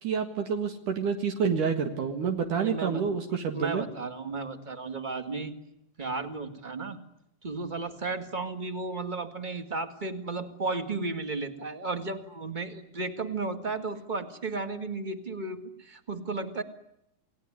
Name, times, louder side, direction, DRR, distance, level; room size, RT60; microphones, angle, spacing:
voice 1, 0.0-3.8, right 6 dB, 65° right, 5 dB, 3.3 m, -28 dB
voice 2, 2.6-3.2 3.5-5.5 6.0-7.0 7.4-16.6, right 3 dB, 20° right, 8 dB, 1.4 m, -34 dB
29.0 x 19.0 x 9.8 m, 0.80 s
omnidirectional pair, 4.0 m